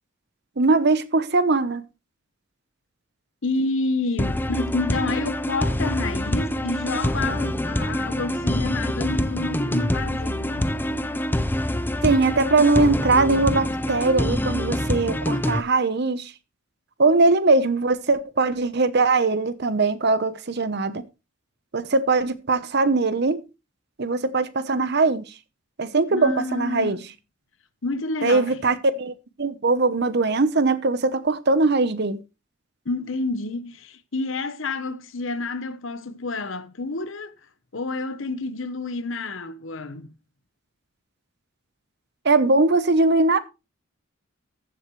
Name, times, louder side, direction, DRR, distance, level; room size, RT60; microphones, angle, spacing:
voice 1, 0.6-1.8 12.0-16.3 17.0-21.0 21.7-23.4 24.0-25.3 25.8-27.0 28.2-32.2 42.2-43.4, right 3 dB, 55° right, 0.9 m, -21 dB
voice 2, 3.4-10.8 26.1-27.1 27.8-28.6 32.8-37.3 37.7-40.1, left 3 dB, 65° left, 1.0 m, -29 dB
sound 1, 4.2-15.6, left 1 dB, 10° left, 0.4 m, -25 dB
14.5 x 7.5 x 3.1 m
head